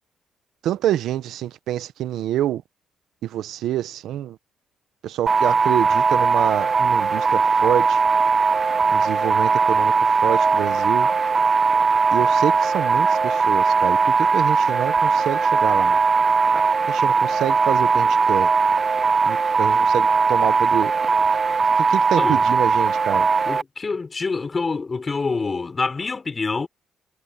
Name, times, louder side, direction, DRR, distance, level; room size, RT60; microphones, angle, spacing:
voice 1, 0.6-2.6 3.2-4.4 5.0-8.0 8.9-11.1 12.1-16.0 16.9-18.5 19.2-20.9 21.8-23.3, right 12 dB, 80° right, 1.0 m, -26 dB
sound 1, 5.3-23.6, right 4 dB, 35° right, 0.8 m, -19 dB
voice 2, 23.4-26.7, left 4 dB, 30° left, 4.3 m, -26 dB
cardioid pair, 90°, 0 cm